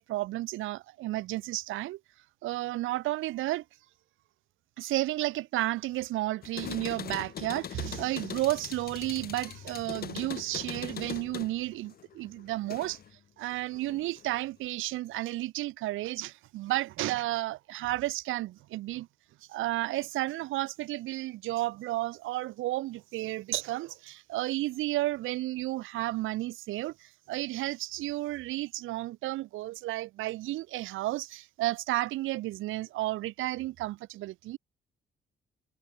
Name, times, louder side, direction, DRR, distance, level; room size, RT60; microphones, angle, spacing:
voice 1, 0.0-2.0 2.4-3.6 4.8-13.0 13.4-19.1 19.5-34.6, right 17 dB, 85° right, 0.8 m, -32 dB
sound 1, 6.4-13.1 13.5-14.3, left 9 dB, 50° left, 1.0 m, -41 dB
cardioid pair, 90°, 20 cm